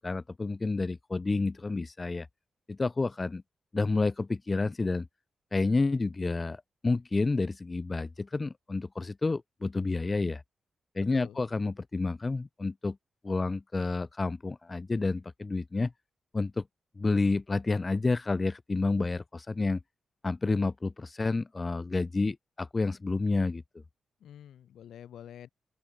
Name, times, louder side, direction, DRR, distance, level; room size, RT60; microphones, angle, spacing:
voice 1, 0.0-2.3 2.7-3.4 3.7-5.1 5.5-10.4 10.9-13.0 13.2-15.9 16.3-16.6 17.0-19.8 20.2-23.6, left 3 dB, 35° left, 1.4 m, -29 dB
voice 2, 11.0-11.4 24.2-25.5, left 10 dB, 85° left, 2.5 m, -47 dB
open air
supercardioid pair, 50°, 0 cm